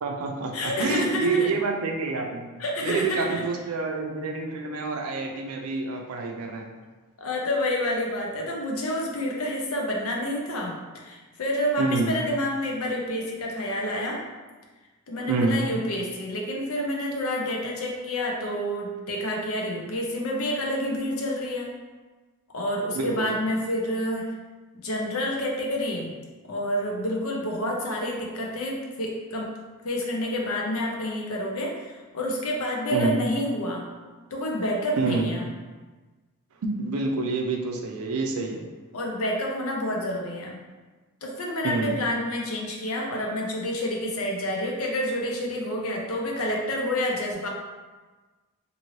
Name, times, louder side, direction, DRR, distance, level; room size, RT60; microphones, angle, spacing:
voice 1, 0.0-2.5 2.8-6.7 11.8-12.1 15.2-15.6 22.9-23.3 32.9-33.1 35.0-35.3 36.6-38.6 41.6-42.0, right 3 dB, 75° right, 2 dB, 0.5 m, -27 dB
voice 2, 0.5-1.5 2.6-3.4 7.2-14.2 15.1-21.7 22.5-24.3 24.8-26.1 26.5-29.5 29.8-33.9 34.3-35.4 38.9-40.6 41.2-47.5, left 1 dB, 70° left, -1 dB, 0.6 m, -28 dB
2.7 x 2.6 x 3.0 m, 1.3 s
head